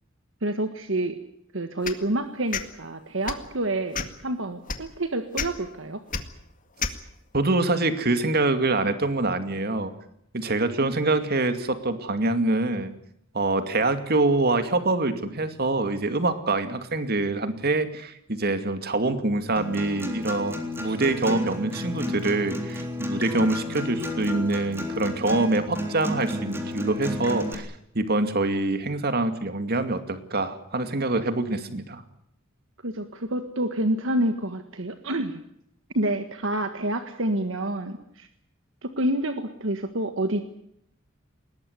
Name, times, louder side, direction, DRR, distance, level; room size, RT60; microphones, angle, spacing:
voice 1, 0.4-1.2 1.5-6.0 32.8-35.4 35.9-38.3 38.8-40.4, right 1 dB, 65° right, 8 dB, 1.6 m, -28 dB
sound 1, 1.8-2.0 2.5-2.7 3.2-3.5 3.9-4.2 4.7-4.8 5.3-5.5 6.1-6.2 6.8-7.0, left 5 dB, 40° left, 2.0 m, -29 dB
voice 2, 7.3-9.9 10.3-12.9 13.3-32.0, right 2 dB, 50° right, 9 dB, 2.4 m, -25 dB
Acoustic guitar, 19.6-27.5, left 1 dB, 10° right, 3.6 m, -32 dB
21.5 x 18.5 x 9.6 m, 0.73 s
head